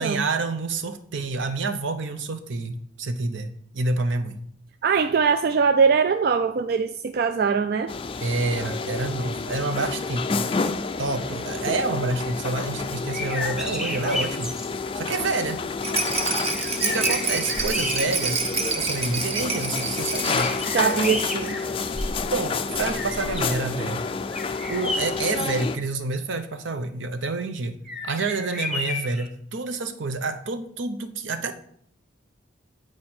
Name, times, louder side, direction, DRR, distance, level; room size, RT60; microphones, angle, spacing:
voice 1, 0.0-4.4 8.2-10.7 11.0-14.5 14.9-15.6 16.8-20.5 22.3-24.0 24.7-27.8 28.0-31.5, right 3 dB, 70° right, 9 dB, 0.7 m, -28 dB
voice 2, 4.8-7.9 20.7-21.6, right 5 dB, 50° right, 9 dB, 0.3 m, -22 dB
sound 1, 7.9-25.8, left 4 dB, 25° left, 0.3 m, -30 dB
sound 2, 13.1-14.7 16.1-16.2 16.5-18.5 19.0-19.1 20.3-22.3 22.7-23.6 24.3-25.5 27.8-29.3, left 1 dB, 5° right, 0.9 m, -32 dB
Rattle, 15.8-21.5 21.8-21.9 22.1-22.2, right 4 dB, 30° right, 0.8 m, -28 dB
9.4 x 4.8 x 4.3 m, 0.68 s
head